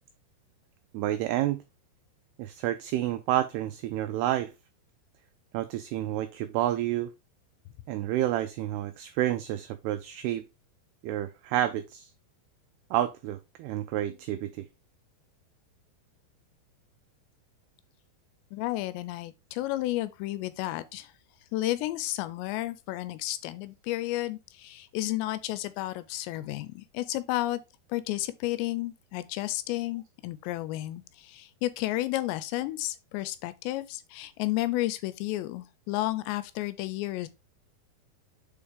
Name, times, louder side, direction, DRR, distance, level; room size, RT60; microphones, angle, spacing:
voice 1, 0.9-1.6 2.4-4.5 5.5-7.1 7.9-10.4 11.0-12.1 12.9-14.7, right 13 dB, 90° right, 2.3 m, -29 dB
voice 2, 18.5-21.1 21.5-27.6 27.9-37.3, left 16 dB, 85° left, 2.7 m, -32 dB
6.9 x 4.7 x 3.5 m
omnidirectional pair, 5.2 m